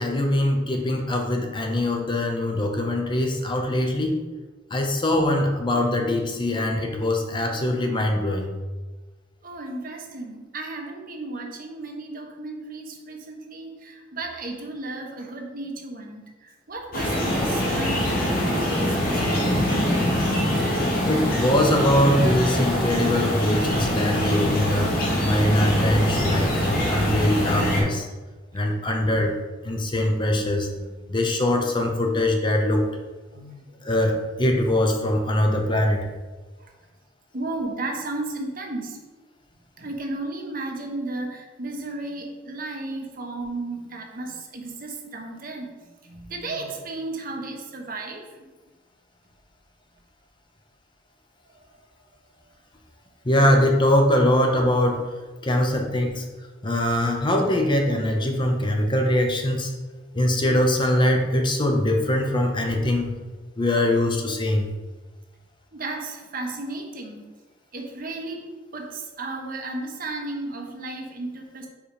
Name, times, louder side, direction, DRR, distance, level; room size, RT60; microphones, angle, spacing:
voice 1, 0.0-4.2 4.7-8.5 21.0-28.1 28.5-29.3 29.6-32.8 33.8-36.1 53.2-55.0 55.4-56.2 56.6-59.7 60.1-63.1 63.6-64.7, left 1 dB, 25° left, 2 dB, 0.7 m, -22 dB
voice 2, 9.4-19.7 20.0-20.1 33.3-33.7 37.3-39.0 39.8-45.7 46.0-48.4 65.7-67.3 67.7-68.4 68.7-71.7, right 2 dB, 50° right, 2 dB, 1.0 m, -34 dB
sound 1, 16.9-27.8, equal, 50° left, 1.8 m, -23 dB
4.9 x 4.9 x 5.0 m, 1.2 s
head